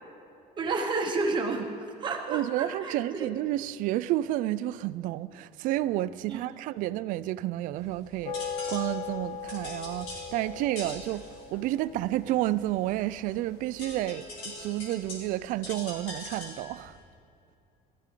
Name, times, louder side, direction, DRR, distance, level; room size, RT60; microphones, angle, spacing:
voice 1, 0.6-1.7 2.0-3.3 6.3-6.4, right 3 dB, 30° right, 1.1 m, -30 dB
voice 2, 2.3-8.3 8.7-17.0, right 15 dB, 60° right, 0.4 m, -30 dB
sound 1, 7.8-17.0, left 2 dB, 90° left, 4.1 m, -44 dB
sound 2, 8.2-13.8, left 6 dB, 70° left, 1.0 m, -39 dB
18.0 x 14.5 x 3.8 m
cardioid pair, 165°, 16 cm